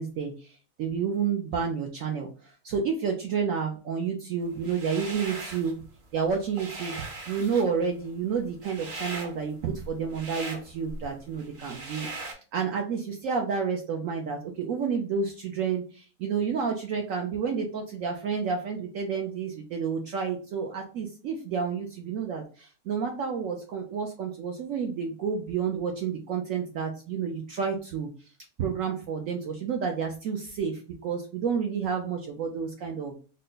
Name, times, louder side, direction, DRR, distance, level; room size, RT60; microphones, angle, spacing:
voice 1, 0.0-5.8 6.1-7.0 7.3-28.1 28.6-33.1, right 6 dB, 65° right, 1 dB, 0.9 m, -30 dB
sound 1, 4.6-5.7 6.1-12.3, right 2 dB, 45° right, 1.1 m, -40 dB
3.9 x 2.2 x 3.8 m, 0.37 s
omnidirectional pair, 1.6 m